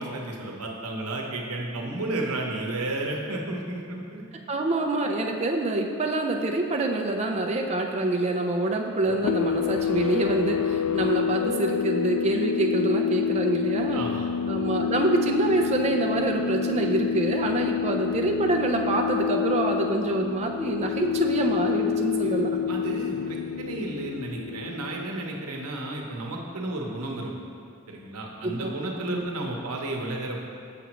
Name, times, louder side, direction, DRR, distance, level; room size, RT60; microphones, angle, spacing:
voice 1, 0.0-4.2 13.9-14.4 22.2-22.4 22.7-27.3 27.9-30.4, right 2 dB, 80° right, -1 dB, 0.8 m, -32 dB
voice 2, 4.5-14.0 14.5-22.6 28.4-28.7 29.1-29.2, right 2 dB, 30° right, 2 dB, 0.4 m, -26 dB
sound 1, 9.1-25.4, left 8 dB, 85° left, 0.3 m, -28 dB
6.7 x 6.1 x 3.0 m, 2.4 s
head